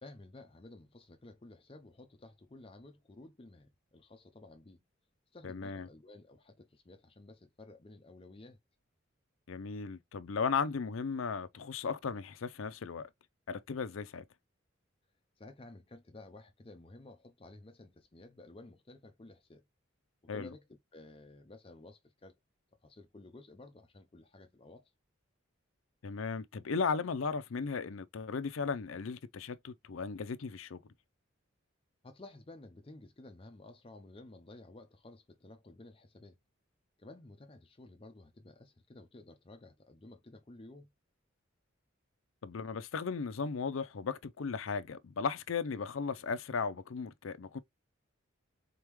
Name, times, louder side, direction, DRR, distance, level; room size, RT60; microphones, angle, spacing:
voice 1, 0.0-4.8 5.3-8.6 15.4-19.6 20.3-20.6 20.9-22.3 22.8-24.8 32.0-36.4 37.0-40.9, left 2 dB, 30° left, 0.5 m, -53 dB
voice 2, 5.4-5.9 9.5-13.1 13.5-14.2 20.3-20.5 26.0-30.8 42.4-47.6, left 5 dB, 85° left, 0.5 m, -36 dB
4.1 x 3.5 x 3.0 m
head